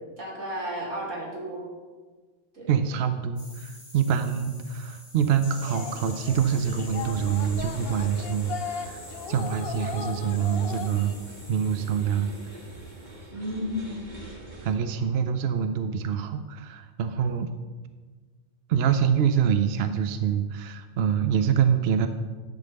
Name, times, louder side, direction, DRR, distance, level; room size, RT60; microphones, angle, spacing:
voice 1, 0.2-1.7 2.5-2.7 13.3-14.0, equal, 80° right, -3 dB, 2.7 m, -33 dB
voice 2, 2.7-11.1 11.5-12.3 14.6-17.5 18.7-22.1, right 8 dB, 65° right, 9 dB, 0.7 m, -25 dB
sound 1, 3.4-13.2, left 1 dB, 90° left, 2.7 m, -47 dB
sound 2, 5.6-11.1, left 7 dB, 60° left, 0.7 m, -37 dB
sound 3, 6.2-14.7, right 1 dB, 40° right, 1.7 m, -44 dB
10.5 x 4.0 x 6.5 m, 1.4 s
omnidirectional pair, 1.3 m